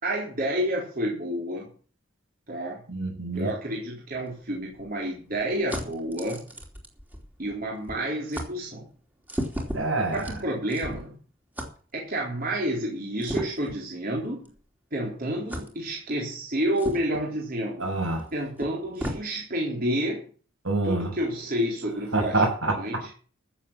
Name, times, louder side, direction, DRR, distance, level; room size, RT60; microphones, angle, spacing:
voice 1, 0.0-1.7 2.5-2.8 3.3-6.4 7.4-8.8 10.1-11.1 11.9-14.5 14.9-17.9 18.3-20.2 20.8-23.1, right 1 dB, 45° right, -3 dB, 3.8 m, -30 dB
voice 2, 2.9-3.5 9.7-10.2 17.8-18.2 20.6-21.1 22.1-22.7, right 2 dB, 75° right, 1 dB, 7.1 m, -26 dB
sound 1, 4.1-7.6 7.9-8.0 8.3-8.5 9.2-11.1 11.5-11.7 13.2-13.8 14.4-14.6 15.5-15.7 16.8-17.2 18.2-18.3 18.6-19.2, equal, 10° right, 3.0 m, -35 dB
15.0 x 7.3 x 7.4 m, 0.41 s
head